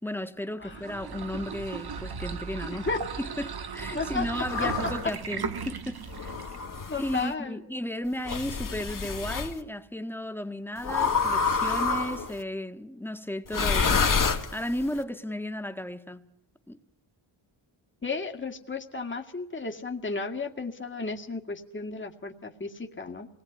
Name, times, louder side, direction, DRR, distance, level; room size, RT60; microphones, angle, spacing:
voice 1, 0.0-2.9 3.2-6.4 7.0-16.3 16.7-16.8, left 1 dB, 5° left, 1.7 m, -34 dB
voice 2, 0.6-1.0 2.9-3.0 3.9-4.3 4.6-4.7 6.9-7.6 18.0-23.3, left 4 dB, 25° left, 2.2 m, -33 dB
sound 1, 0.6-6.7, right 5 dB, 50° right, 1.6 m, -36 dB
sound 2, 4.4-5.1 6.1-7.3 8.2-9.5 10.8-12.4 13.5-14.9, left 5 dB, 40° left, 2.2 m, -28 dB
28.0 x 20.0 x 9.8 m
wide cardioid pair, 135°, 50 cm